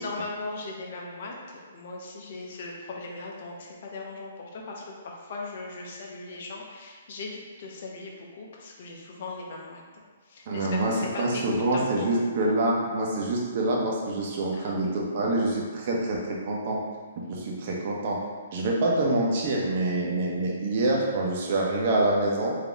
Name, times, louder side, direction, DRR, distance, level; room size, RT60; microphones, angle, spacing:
voice 1, 0.0-9.8 10.3-12.3 14.5-14.7, left 3 dB, 55° left, -1 dB, 0.8 m, -38 dB
voice 2, 10.5-16.8 17.3-18.2 18.5-22.5, right 2 dB, 45° right, -2 dB, 0.9 m, -26 dB
4.0 x 2.8 x 3.5 m, 1.5 s
hypercardioid pair, 150°, 0 cm